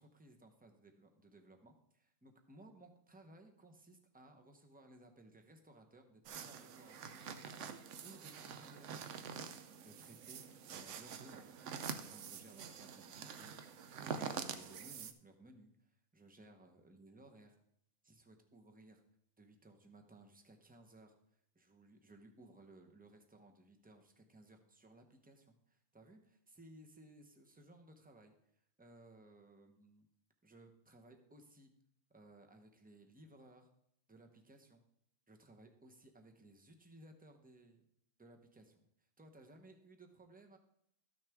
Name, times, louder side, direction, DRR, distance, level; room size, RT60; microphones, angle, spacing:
voice 1, 0.0-17.6 18.0-19.0 19.4-21.1 21.5-28.3 28.8-30.1 30.4-31.7 32.1-33.7 34.1-34.8 35.3-37.9 38.2-38.8 39.2-40.6, right 1 dB, 10° right, 4 dB, 0.7 m, -60 dB
sound 1, 6.3-15.1, right 6 dB, 65° right, 0.9 m, -46 dB
13.0 x 6.4 x 3.5 m, 0.73 s
omnidirectional pair, 1.4 m